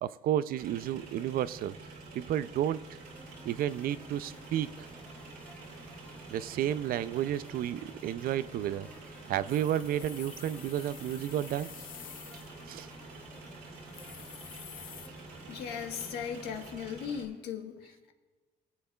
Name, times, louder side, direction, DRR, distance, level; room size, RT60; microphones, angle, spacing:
voice 1, 0.0-1.7 2.2-2.8 3.5-4.9 6.3-8.9 9.3-11.7 12.7-12.9, right 11 dB, 60° right, 15 dB, 0.4 m, -31 dB
sound 1, 0.5-17.2, right 3 dB, 80° right, 2.1 m, -48 dB
sound 2, 3.0-16.8, left 1 dB, 10° left, 0.7 m, -55 dB
sound 3, 9.5-12.6 13.2-13.3 13.6-13.7 13.9-15.1, left 11 dB, 55° left, 0.6 m, -49 dB
voice 2, 15.5-18.1, left 7 dB, 75° left, 4 dB, 1.4 m, -38 dB
22.0 x 7.7 x 2.3 m, 1.3 s
cardioid pair, 110°, 17 cm